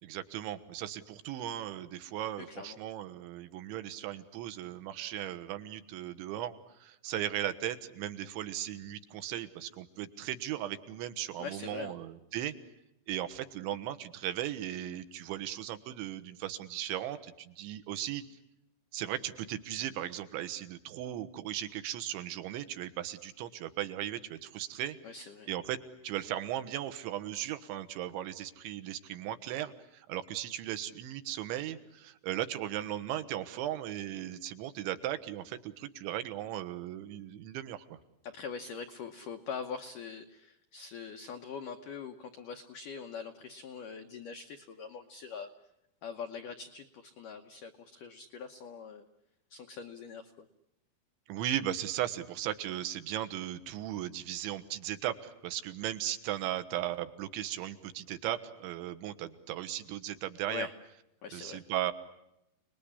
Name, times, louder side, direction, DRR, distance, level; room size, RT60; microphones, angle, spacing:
voice 1, 0.0-12.5 13.1-18.2 18.9-25.0 25.5-25.8 26.0-38.0 51.3-60.7 61.3-61.9, right 12 dB, 80° right, 10 dB, 3.6 m, -37 dB
voice 2, 2.4-2.8 11.4-11.9 25.0-25.5 38.2-45.5 46.0-49.1 49.5-50.5 60.5-60.7 61.2-61.6, left 6 dB, 80° left, 6 dB, 1.8 m, -43 dB
29.5 x 20.5 x 9.8 m, 0.84 s
omnidirectional pair, 5.4 m